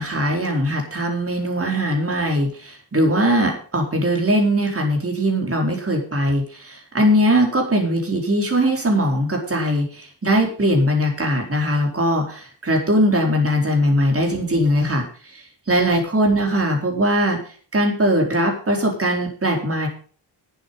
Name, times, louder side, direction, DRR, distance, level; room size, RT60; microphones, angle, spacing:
voice 1, 0.0-17.4 17.7-19.9, equal, 30° right, 1 dB, 4.3 m, -20 dB
12.0 x 9.1 x 5.4 m, 0.43 s
wide cardioid pair, 105°, 44 cm